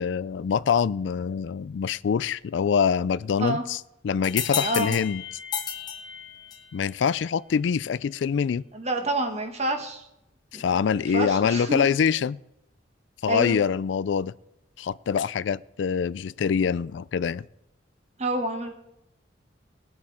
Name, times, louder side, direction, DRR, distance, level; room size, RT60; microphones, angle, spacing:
voice 1, 0.0-3.8 4.0-5.2 6.7-8.6 10.5-12.4 13.2-14.3 14.8-17.5, left 6 dB, 75° left, 0.3 m, -25 dB
sound 1, 4.2-6.8, left 7 dB, 25° left, 1.3 m, -32 dB
voice 2, 4.6-4.9 8.7-10.0 10.5-11.9 13.3-13.6 18.2-18.7, right 1 dB, 35° right, 1.5 m, -28 dB
19.0 x 7.1 x 4.8 m
head